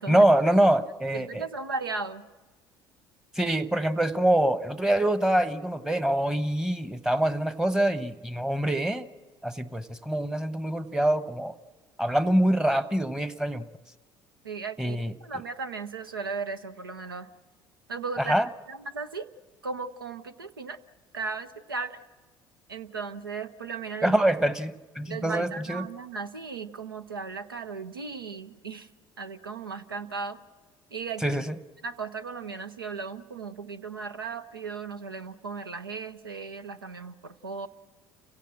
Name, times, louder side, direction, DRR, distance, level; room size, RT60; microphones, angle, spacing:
voice 1, 0.1-1.4 3.3-9.1 9.4-11.5 12.0-13.7 14.8-15.1 18.2-18.5 24.0-25.9 31.2-31.5, right 1 dB, 5° right, 13 dB, 1.0 m, -25 dB
voice 2, 1.1-2.2 14.4-17.3 17.9-18.4 18.7-19.3 19.6-20.8 21.1-22.0 22.7-24.2 25.1-28.9 29.2-30.4 30.9-31.4 31.8-37.7, right 4 dB, 90° right, 12 dB, 0.7 m, -36 dB
29.5 x 16.5 x 6.3 m, 1.3 s
figure-of-eight pair, 60°, 11 cm